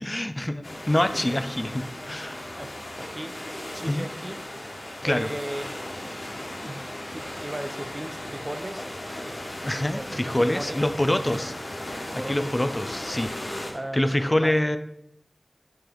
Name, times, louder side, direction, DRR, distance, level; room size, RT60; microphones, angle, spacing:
voice 1, 0.0-2.4 3.8-4.1 5.0-5.3 9.6-11.5 12.3-13.3 13.9-14.8, left 1 dB, 25° left, 10 dB, 0.4 m, -25 dB
sound 1, 0.6-13.7, left 1 dB, 80° left, 1.4 m, -36 dB
voice 2, 1.1-1.4 2.2-4.4 5.0-5.7 6.6-8.9 10.0-10.1 10.4-10.8 11.1-11.4 12.1-12.6 13.7-14.6, right 1 dB, 30° right, 9 dB, 0.5 m, -37 dB
8.7 x 3.4 x 3.8 m, 0.80 s
wide cardioid pair, 55°, 0 cm